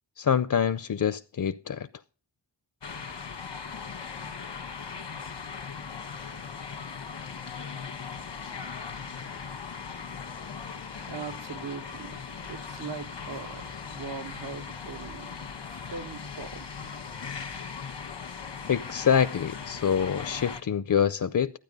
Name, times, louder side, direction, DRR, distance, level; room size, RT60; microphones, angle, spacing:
voice 1, 0.2-1.9 18.7-21.5, left 8 dB, 50° left, 0.5 m, -25 dB
sound 1, 2.8-20.6, left 5 dB, 90° left, 1.3 m, -39 dB
voice 2, 11.1-15.4 15.9-16.7, right 5 dB, 70° right, 0.9 m, -40 dB
13.0 x 9.3 x 5.3 m
wide cardioid pair, 55°, 42 cm